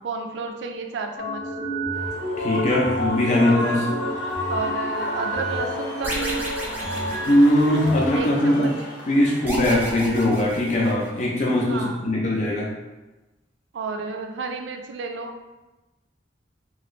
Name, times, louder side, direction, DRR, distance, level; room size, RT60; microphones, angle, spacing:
voice 1, 0.0-1.4 4.5-6.7 8.1-8.7 11.7-12.1 13.7-15.3, right 4 dB, 85° right, 4 dB, 0.4 m, -32 dB
sound 1, 1.2-8.2, equal, 60° left, 0.9 m, -30 dB
Human voice / Cheering / Applause, 1.9-9.6, left 1 dB, 85° left, 0.6 m, -32 dB
voice 2, 2.4-3.9 7.3-8.7 9.1-12.7, left 1 dB, 40° left, -4 dB, 0.5 m, -20 dB
sound 2, 6.0-8.0 9.4-11.2, right 1 dB, 10° right, 0.6 m, -33 dB
2.9 x 2.5 x 3.0 m, 1.1 s
head